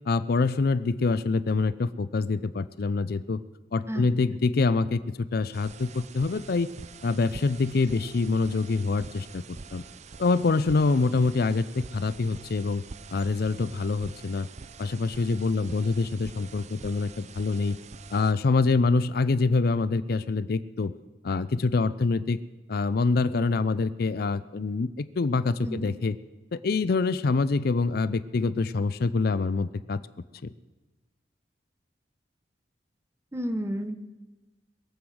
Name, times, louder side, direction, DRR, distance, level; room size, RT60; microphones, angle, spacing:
voice 1, 0.1-3.4 3.7-6.7 7.0-9.8 10.2-12.8 13.1-14.5 14.8-17.8 18.1-20.9 21.2-22.4 22.7-26.1 26.5-30.0, left 3 dB, 60° left, 15 dB, 0.5 m, -25 dB
sound 1, 5.5-18.3, right 4 dB, 40° right, 0.5 m, -46 dB
voice 2, 33.3-33.9, equal, 15° right, 9 dB, 1.0 m, -31 dB
22.0 x 7.9 x 6.2 m, 1.2 s
head